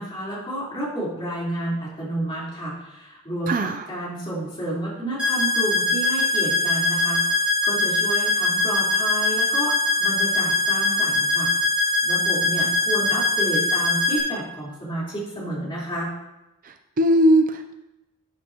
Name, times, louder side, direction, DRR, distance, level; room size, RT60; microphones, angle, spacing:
voice 1, 0.0-11.5 11.8-16.1, right 1 dB, 25° left, -7 dB, 4.1 m, -30 dB
voice 2, 3.5-3.8 16.6-17.7, right 1 dB, 40° right, 7 dB, 0.5 m, -20 dB
sound 1, 5.2-14.2, left 2 dB, 5° right, 3.3 m, -22 dB
12.5 x 9.1 x 3.0 m, 0.95 s
head